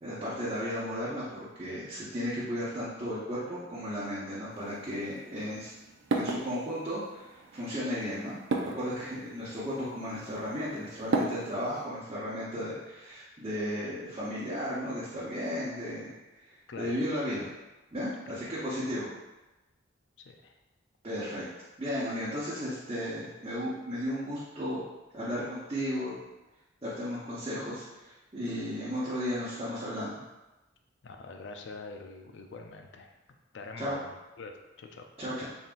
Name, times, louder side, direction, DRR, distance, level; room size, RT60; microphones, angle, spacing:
voice 1, 0.0-5.7 6.1-8.4 8.7-16.2 16.4-17.5 17.9-19.1 21.0-21.5 21.8-24.8 25.1-26.2 26.8-30.2 33.8-33.9 35.2-35.4, equal, 30° right, -11 dB, 0.9 m, -34 dB
sound 1, 4.5-11.9, right 2 dB, 85° right, 0.5 m, -37 dB
voice 2, 20.2-20.5 31.0-33.1 33.5-34.5 34.8-35.1, left 3 dB, 65° left, 4 dB, 0.4 m, -44 dB
4.0 x 3.7 x 2.5 m, 1.1 s
head